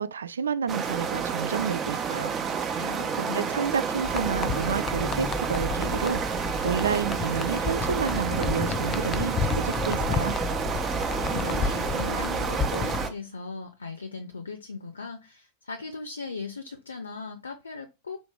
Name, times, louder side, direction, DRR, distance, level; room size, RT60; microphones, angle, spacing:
voice 1, 0.0-2.4 2.7-2.9 3.2-10.4, right 7 dB, 70° right, 0.3 m, -30 dB
sound 1, 0.7-13.1, right 6 dB, 25° right, 0.7 m, -30 dB
voice 2, 2.8-3.5 11.3-18.2, left 4 dB, 75° left, 0.5 m, -38 dB
sound 2, 4.0-13.1, left 5 dB, 25° left, 0.4 m, -31 dB
4.2 x 2.9 x 3.4 m
figure-of-eight pair, 90°, 0 cm